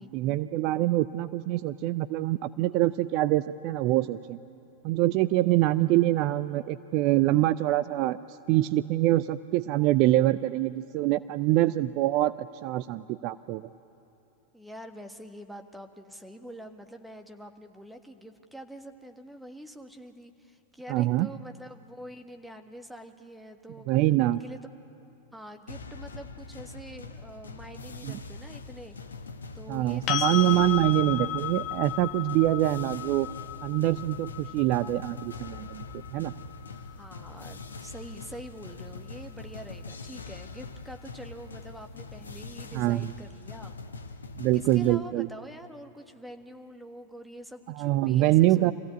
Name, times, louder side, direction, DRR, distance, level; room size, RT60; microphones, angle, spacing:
voice 1, 0.0-4.4 4.8-8.2 8.5-13.7 20.9-21.3 23.9-24.4 28.0-28.2 29.7-33.3 33.6-36.3 42.7-43.1 44.4-45.3 47.8-48.7, right 15 dB, 40° right, 14 dB, 0.4 m, -25 dB
voice 2, 14.5-23.9 24.2-24.6 25.3-29.0 29.5-31.0 36.7-43.7 44.5-48.7, equal, ahead, 5 dB, 1.4 m, -45 dB
sound 1, 25.7-45.0, left 3 dB, 75° left, 1.0 m, -43 dB
sound 2, 30.1-37.9 40.7-40.8, left 14 dB, 40° left, 0.9 m, -35 dB
26.0 x 16.0 x 8.6 m, 2.8 s
figure-of-eight pair, 90°, 0 cm